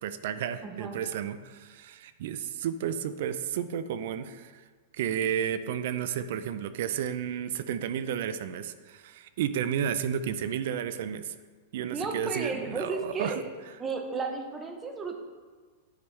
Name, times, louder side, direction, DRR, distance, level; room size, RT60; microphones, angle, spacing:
voice 1, 0.0-4.6 4.9-11.3 11.7-13.4, right 9 dB, 60° right, 12 dB, 0.3 m, -32 dB
voice 2, 0.6-1.0 11.9-13.4 13.8-15.2, right 4 dB, 15° right, 3 dB, 0.7 m, -33 dB
10.5 x 4.5 x 3.2 m, 1.5 s
supercardioid pair, 160°, 0 cm